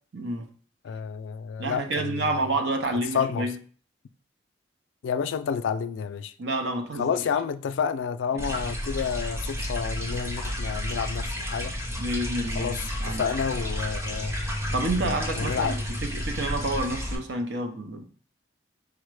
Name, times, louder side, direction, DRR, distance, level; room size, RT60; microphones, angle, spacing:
voice 1, 0.1-0.5 1.6-3.5 6.4-7.2 12.0-13.3 14.7-15.8 16.0-18.0, right 2 dB, 70° right, 0.7 m, -29 dB
voice 2, 0.8-2.3 3.1-3.5 5.0-6.3 7.0-11.8 12.6-14.3 15.3-15.8, left 6 dB, 90° left, 0.3 m, -29 dB
sound 1, 8.4-17.1, equal, 15° right, 0.6 m, -31 dB
4.9 x 2.1 x 4.7 m
head